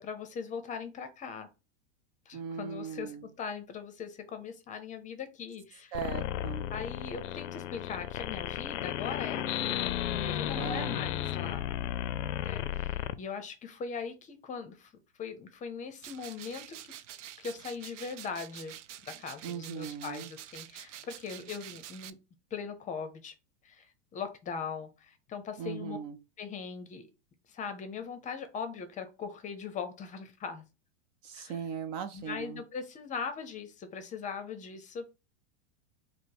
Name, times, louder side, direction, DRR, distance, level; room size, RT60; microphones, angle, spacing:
voice 1, 0.0-1.5 2.3-5.9 6.7-9.7 10.1-11.6 12.4-14.9 15.2-16.9 17.4-18.8 19.1-22.2 22.5-23.3 23.6-23.9 24.1-26.0 26.4-27.1 27.5-30.6 31.3-31.6 32.1-35.1, left 6 dB, 20° left, 0.6 m, -40 dB
voice 2, 2.3-3.3 5.9-6.7 10.5-11.0 19.4-20.3 25.6-26.2 31.2-32.6, right 7 dB, 40° right, 0.4 m, -38 dB
sound 1, 5.9-13.1, left 11 dB, 85° left, 0.5 m, -34 dB
sound 2, 16.0-22.1, right 12 dB, 90° right, 0.5 m, -47 dB
4.7 x 2.1 x 4.7 m
supercardioid pair, 130°, 35 cm